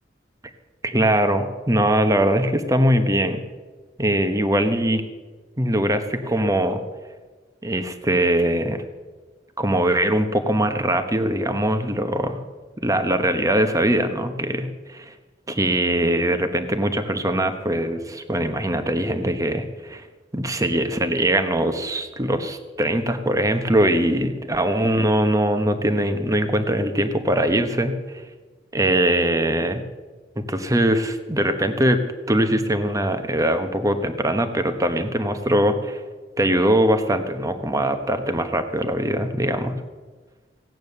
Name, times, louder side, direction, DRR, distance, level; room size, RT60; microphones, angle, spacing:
voice 1, 0.8-3.4 4.0-5.0 5.6-6.8 7.6-8.8 9.6-12.4 12.8-15.1 15.5-20.0 20.3-28.2 28.7-29.8 30.4-32.0 32.3-36.0 36.4-39.8, right 1 dB, 20° right, 8 dB, 1.1 m, -21 dB
16.5 x 9.1 x 6.7 m, 1.3 s
head